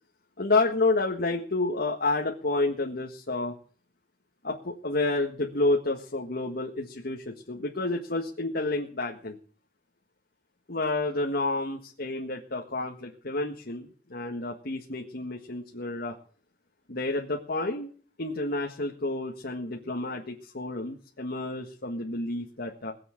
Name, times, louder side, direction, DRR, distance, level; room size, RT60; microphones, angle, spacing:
voice 1, 0.4-3.5 4.4-9.4 10.7-16.1 16.9-17.9 18.2-22.9, left 2 dB, 55° left, 1 dB, 1.8 m, -30 dB
21.5 x 7.7 x 7.5 m, 0.43 s
head